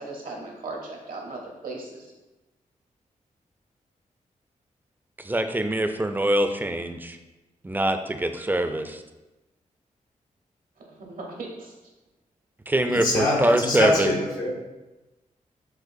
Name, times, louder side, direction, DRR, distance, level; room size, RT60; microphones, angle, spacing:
voice 1, 0.0-2.1 10.8-11.7, right 2 dB, 80° right, 0 dB, 1.0 m, -37 dB
voice 2, 5.3-7.2 7.6-9.0 12.7-14.1, right 1 dB, 15° right, 7 dB, 0.3 m, -24 dB
voice 3, 12.8-14.5, left 2 dB, 90° left, -2 dB, 1.1 m, -24 dB
6.2 x 2.5 x 2.6 m, 1.1 s
cardioid pair, 70°, 14 cm